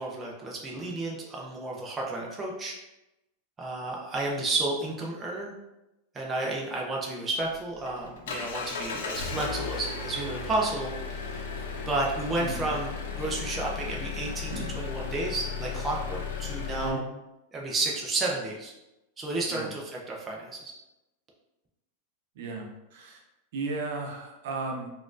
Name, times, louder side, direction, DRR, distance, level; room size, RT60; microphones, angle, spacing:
voice 1, 0.0-2.8 3.6-5.5 6.1-11.5 11.9-17.0 17.5-18.7 19.2-20.7, right 2 dB, 15° right, -2 dB, 0.5 m, -32 dB
Engine, 7.4-16.9, left 5 dB, 85° left, 0.5 m, -35 dB
voice 2, 22.4-23.2 23.5-24.9, right 3 dB, 70° right, 0 dB, 0.7 m, -35 dB
4.1 x 2.4 x 2.4 m, 0.95 s
supercardioid pair, 150°, 0 cm